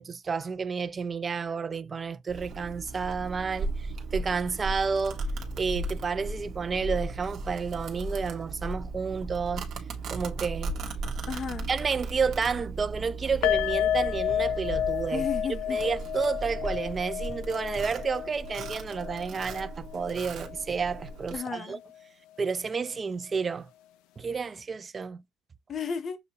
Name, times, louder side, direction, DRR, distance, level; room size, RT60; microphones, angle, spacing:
voice 1, 0.0-5.2 5.6-9.7 10.1-10.7 11.7-15.3 15.7-21.8 22.4-23.7 24.2-25.2, right 5 dB, 25° right, 0.3 m, -31 dB
Domestic sounds home sounds, 2.3-21.4, right 2 dB, 50° right, 1.1 m, -36 dB
voice 2, 11.3-11.7 15.1-15.8 21.3-21.8 25.7-26.2, left 6 dB, 35° left, 0.7 m, -33 dB
sound 1, 13.4-20.6 20.9-21.1 21.5-21.6, left 11 dB, 85° left, 0.4 m, -31 dB
6.6 x 2.7 x 2.9 m
cardioid pair, 135°, 0 cm